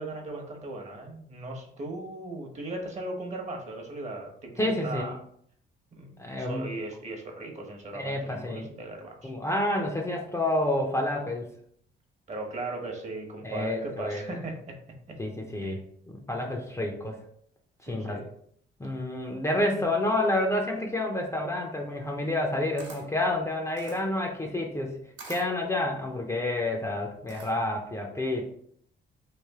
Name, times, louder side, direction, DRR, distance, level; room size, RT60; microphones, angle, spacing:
voice 1, 0.0-5.2 5.9-9.3 9.8-9.9 12.3-14.7 15.6-15.8 17.9-18.3 19.6-19.9, right 2 dB, 35° right, 1 dB, 1.0 m, -38 dB
voice 2, 4.6-5.2 6.2-6.6 7.9-8.7 9.2-11.5 13.4-14.2 15.2-15.8 16.1-17.2 17.8-18.2 18.8-24.9 25.3-28.5, left 1 dB, 15° left, 1 dB, 0.6 m, -29 dB
Camera, 22.7-27.8, right 3 dB, 70° right, 1.2 m, -49 dB
3.2 x 2.5 x 3.5 m, 0.65 s
cardioid pair, 90°, 20 cm